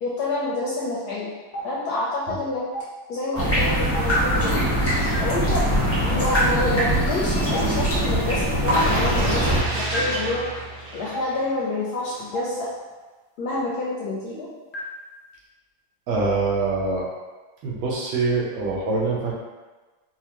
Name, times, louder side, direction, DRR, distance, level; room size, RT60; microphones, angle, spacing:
voice 1, 0.0-1.3 1.6-2.6 3.1-4.7 5.2-5.7 6.0-10.4 10.9-12.7 13.4-14.5, left 2 dB, 70° left, -5 dB, 1.0 m, -28 dB
Stream, 1.5-1.6 2.7-2.8 3.9-4.0 5.1-5.2 6.3-6.4 7.5-7.6 8.7-8.8 9.9-10.0 11.1-11.2 12.3-12.4 13.5-13.6 14.7-14.8, equal, 90° left, 0.3 m, -30 dB
sound 1, 3.3-9.6, equal, 15° left, 0.5 m, -22 dB
sound 2, 8.7-11.7 12.1-12.2, right 1 dB, 65° right, 1.2 m, -29 dB
voice 2, 16.1-17.1 17.6-19.3, right 3 dB, 85° right, -4 dB, 1.6 m, -24 dB
4.3 x 2.4 x 2.8 m, 1.3 s
omnidirectional pair, 2.2 m